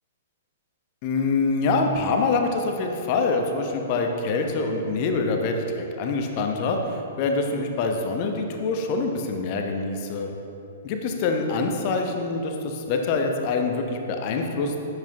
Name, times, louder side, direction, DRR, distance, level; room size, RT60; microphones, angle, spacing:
voice 1, 1.0-10.3 10.8-14.8, left 3 dB, 40° left, 3 dB, 0.9 m, -25 dB
10.0 x 7.9 x 3.0 m, 2.8 s
figure-of-eight pair, 110°, 0 cm